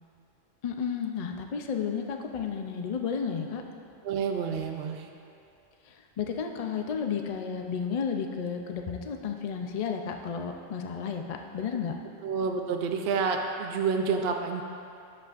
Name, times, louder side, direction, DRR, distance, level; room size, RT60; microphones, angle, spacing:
voice 1, 0.6-3.6 5.9-11.9, left 6 dB, 55° left, 4 dB, 0.4 m, -32 dB
voice 2, 4.0-5.1 12.2-14.6, right 5 dB, 60° right, 3 dB, 0.7 m, -29 dB
10.5 x 7.4 x 2.5 m, 2.6 s
omnidirectional pair, 1.3 m